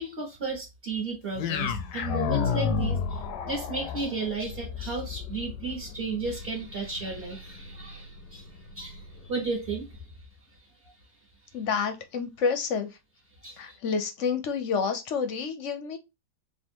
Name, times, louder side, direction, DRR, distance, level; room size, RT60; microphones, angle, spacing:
voice 1, 0.0-10.1 13.4-13.8, right 3 dB, 40° right, 1.4 m, -34 dB
sound 1, 1.4-9.6, left 7 dB, 85° left, 1.2 m, -33 dB
voice 2, 11.5-13.0 13.6-16.0, left 5 dB, 60° left, 0.9 m, -29 dB
3.5 x 2.5 x 4.4 m
omnidirectional pair, 1.7 m